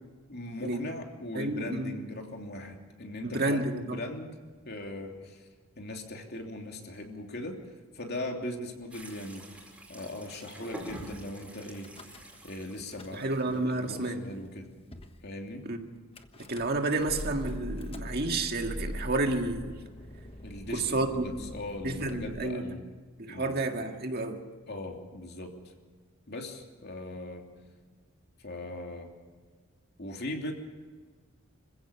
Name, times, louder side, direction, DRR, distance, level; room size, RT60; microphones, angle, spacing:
voice 1, 0.3-4.4 4.6-5.4 5.8-7.6 7.9-9.6 9.9-14.7 15.2-15.6 20.4-22.9 23.3-23.7 24.7-25.5 26.3-27.4 28.4-29.1 30.0-30.5, left 1 dB, 50° left, 3.0 m, -39 dB
voice 2, 1.3-2.0 3.2-4.0 13.1-14.2 15.7-15.9 16.5-19.8 20.7-21.5 21.8-22.7 23.2-24.4, right 2 dB, 45° right, 1.9 m, -30 dB
sound 1, 8.9-13.9, equal, 5° right, 4.6 m, -47 dB
Car / Engine starting / Idling, 11.7-12.5 12.8-13.6 14.2-14.3 14.5-14.6 14.9-15.2 16.2-22.3, left 1 dB, 25° left, 1.3 m, -42 dB
26.5 x 16.0 x 7.0 m
head